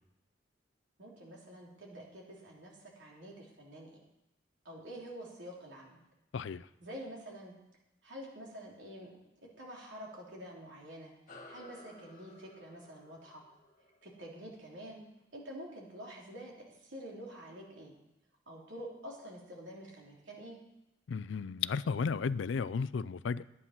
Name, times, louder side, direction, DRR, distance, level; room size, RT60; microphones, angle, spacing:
voice 1, 1.0-4.0 4.6-6.0 6.8-7.5 8.0-9.2 9.6-13.4 14.0-15.0 15.3-17.9 18.5-20.6, equal, 75° right, -2 dB, 3.2 m, -48 dB
voice 2, 6.3-6.6 21.1-23.4, left 5 dB, 80° left, 18 dB, 0.4 m, -34 dB
sound 1, 11.3-16.1, left 2 dB, 45° left, 1.8 m, -57 dB
11.0 x 9.4 x 5.8 m, 0.89 s
head